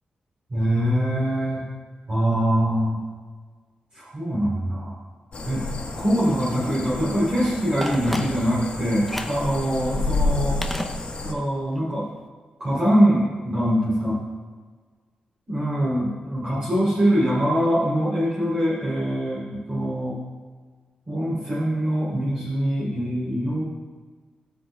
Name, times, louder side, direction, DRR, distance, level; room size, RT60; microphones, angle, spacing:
voice 1, 0.5-1.6 2.1-3.0 3.9-5.0 5.5-5.6 6.0-10.6 11.2-12.1 12.6-14.2 15.5-20.2 21.1-23.6, equal, 35° right, -8 dB, 3.3 m, -23 dB
sound 1, 5.3-11.3, left 3 dB, 50° left, 1.5 m, -30 dB
Telephone, 7.8-8.7 9.1-9.5 10.6-11.5 11.8-11.9, left 1 dB, 5° left, 0.6 m, -32 dB
20.0 x 7.7 x 2.3 m, 1.5 s
wide cardioid pair, 160°, 3 cm